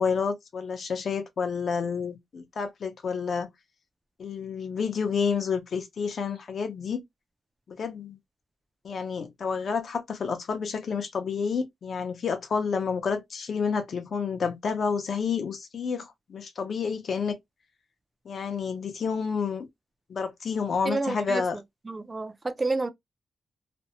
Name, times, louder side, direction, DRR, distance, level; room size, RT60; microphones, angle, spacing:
voice 1, 0.0-3.5 4.2-7.0 7.7-8.2 8.8-17.4 18.3-19.7 20.1-21.6, left 5 dB, 55° left, 0.6 m, -29 dB
voice 2, 20.9-21.4 21.9-22.9, right 3 dB, 20° right, 0.4 m, -29 dB
2.5 x 2.1 x 2.7 m
wide cardioid pair, 145°, 0 cm